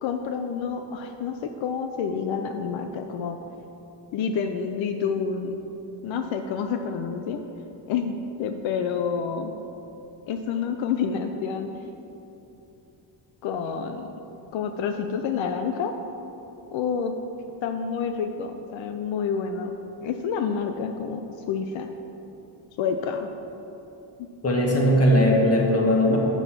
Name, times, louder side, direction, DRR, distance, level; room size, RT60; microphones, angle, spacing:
voice 1, 0.0-3.4 4.1-5.6 6.0-7.4 7.9-9.5 10.3-11.7 13.4-14.1 14.5-15.9 16.7-17.1 17.6-19.8 20.0-21.9 22.8-23.3, left 6 dB, 85° left, 6 dB, 0.6 m, -28 dB
voice 2, 24.4-26.2, equal, 35° left, -1 dB, 1.5 m, -19 dB
7.0 x 5.3 x 5.9 m, 3.0 s
cardioid pair, 95°, 45 cm